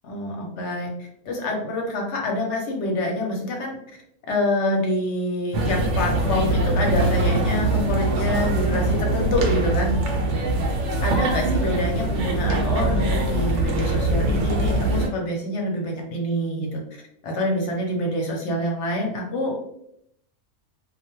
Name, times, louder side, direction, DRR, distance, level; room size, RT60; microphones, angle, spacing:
voice 1, 0.0-3.8 4.3-9.9 11.0-16.8 17.2-19.6, left 1 dB, 60° left, 0 dB, 0.9 m, -26 dB
sound 1, 5.5-15.1, right 2 dB, 65° right, 0.8 m, -22 dB
2.3 x 2.2 x 2.9 m, 0.74 s
omnidirectional pair, 1.5 m